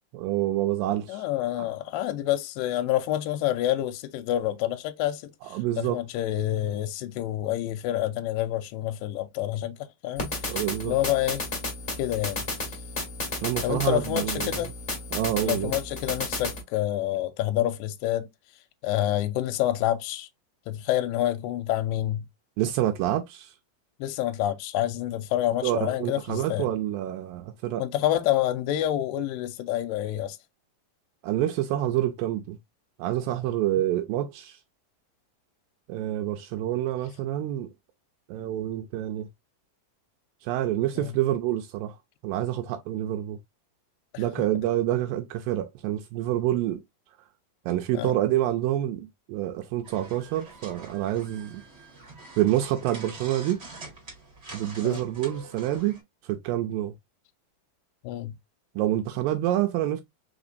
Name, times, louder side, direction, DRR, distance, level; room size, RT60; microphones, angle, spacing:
voice 1, 0.1-1.2 1.6-1.7 5.4-6.0 10.5-10.9 13.4-14.7 15.1-15.7 22.6-23.5 25.6-27.8 31.2-32.6 33.0-34.6 35.9-37.7 38.3-39.3 40.4-42.0 42.2-43.4 44.2-46.8 47.7-51.6 52.4-53.6 54.5-56.9 58.8-60.0, right 13 dB, 80° right, 2.2 m, -27 dB
voice 2, 1.1-10.6 10.8-11.4 12.0-12.5 13.6-14.7 15.4-18.3 18.8-20.3 20.7-22.3 24.0-26.7 27.8-30.4 41.0-41.1 44.1-44.2 47.9-48.1 54.8-55.0 58.0-58.3, left 13 dB, 85° left, 2.2 m, -28 dB
sound 1, 10.2-16.6, left 2 dB, 20° left, 1.2 m, -33 dB
sound 2, 49.8-56.0, right 3 dB, 30° right, 1.1 m, -45 dB
5.0 x 3.6 x 2.6 m
omnidirectional pair, 4.1 m